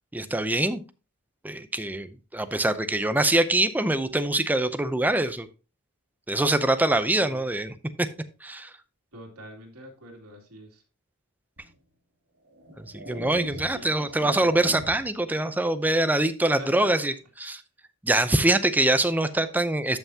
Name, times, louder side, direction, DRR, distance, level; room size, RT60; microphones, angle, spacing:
voice 1, 0.1-0.8 1.4-5.5 6.3-8.1 8.4-8.7 12.8-17.6 18.0-20.0, right 1 dB, 10° right, 11 dB, 0.5 m, -24 dB
voice 2, 7.2-7.5 9.1-10.8 13.1-14.4 16.6-17.1, equal, 75° right, 0 dB, 2.7 m, -46 dB
sound 1, 11.6-11.7 12.5-15.2, equal, 50° right, 1.7 m, -40 dB
13.0 x 5.7 x 2.8 m, 0.32 s
head